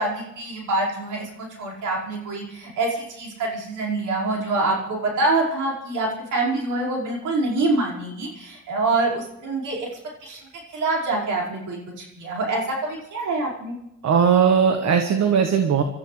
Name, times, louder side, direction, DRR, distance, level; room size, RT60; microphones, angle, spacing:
voice 1, 0.0-9.9 10.2-10.4 10.7-13.7, right 2 dB, 80° right, -3 dB, 5.1 m, -25 dB
voice 2, 14.0-15.8, right 7 dB, 60° right, 6 dB, 1.4 m, -18 dB
26.0 x 13.5 x 3.3 m, 0.87 s
cardioid pair, 90°, 30 cm